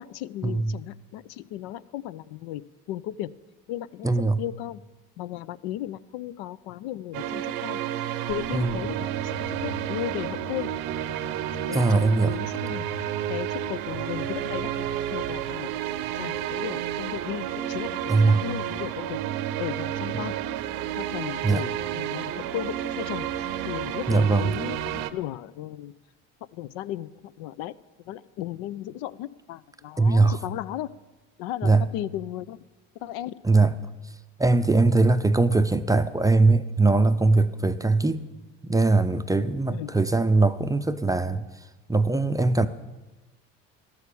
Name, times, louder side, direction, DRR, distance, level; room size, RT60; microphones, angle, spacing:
voice 1, 0.0-3.3 3.7-4.8 5.2-9.3 9.6-10.7 11.7-17.9 18.4-19.2 19.6-20.3 20.9-25.9 26.5-27.7 28.1-30.9 31.4-32.6 33.0-33.4 39.7-39.9, left 13 dB, 75° left, 0.5 m, -36 dB
voice 2, 4.0-4.4 8.5-8.7 11.7-12.4 18.1-18.5 21.4-21.7 24.1-24.6 30.0-30.4 31.6-31.9 33.4-33.8 34.4-38.2 38.6-41.4 41.9-42.7, right 3 dB, 10° right, 0.4 m, -21 dB
sound 1, 7.1-25.1, right 12 dB, 75° right, 0.8 m, -31 dB
sound 2, 8.3-25.1, left 5 dB, 60° left, 2.8 m, -45 dB
12.5 x 7.9 x 6.9 m
supercardioid pair, 80°, 38 cm